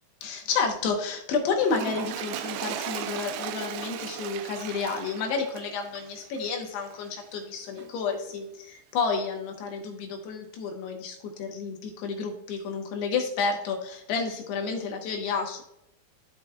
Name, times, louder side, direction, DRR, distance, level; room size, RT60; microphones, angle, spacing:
voice 1, 0.2-15.6, left 5 dB, 75° left, 2 dB, 2.9 m, -30 dB
Toilet flush, 1.6-7.1 7.8-7.9, right 11 dB, 90° right, 2.2 m, -37 dB
13.0 x 5.0 x 2.2 m, 0.82 s
omnidirectional pair, 5.1 m